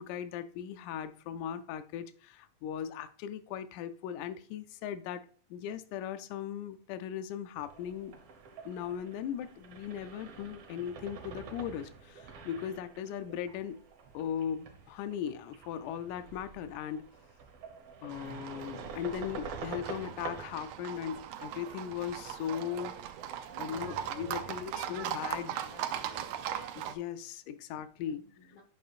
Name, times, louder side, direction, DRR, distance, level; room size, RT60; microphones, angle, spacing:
voice 1, 0.0-8.2 8.7-13.8 14.1-17.1 18.0-22.9 23.6-25.6 26.8-28.2, left 9 dB, 90° left, 11 dB, 2.0 m, -38 dB
sound 1, 7.6-25.4, right 4 dB, 60° right, 1.9 m, -48 dB
Livestock farm animals working animals, 18.1-26.9, right 10 dB, 80° right, 1.9 m, -39 dB
voice 2, 23.5-26.4 28.0-28.6, left 4 dB, 60° left, -1 dB, 1.4 m, -54 dB
9.7 x 6.4 x 2.4 m, 0.44 s
omnidirectional pair, 3.5 m